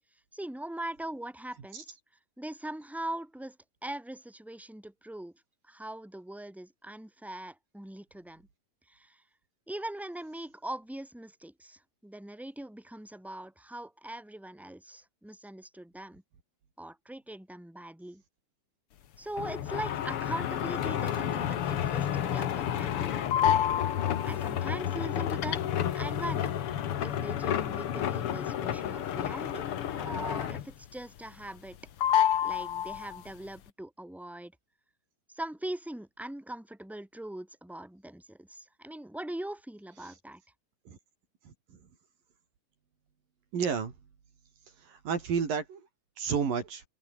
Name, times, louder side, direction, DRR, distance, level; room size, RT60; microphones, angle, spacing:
voice 1, 0.3-2.0 2.4-3.6 3.8-5.3 5.6-8.5 8.9-9.2 9.7-16.2 16.8-18.2 19.2-23.3 24.2-25.6 25.9-26.5 27.0-29.7 29.9-31.8 32.4-34.5 35.3-40.4, right 1 dB, ahead, 6.2 m, -41 dB
sound 1, 19.4-30.9 31.2-31.7 32.0-33.3, left 10 dB, 55° left, 1.6 m, -30 dB
voice 2, 43.5-43.9 44.9-45.8 46.2-46.8, right 6 dB, 75° right, 5.3 m, -30 dB
open air
omnidirectional pair, 4.1 m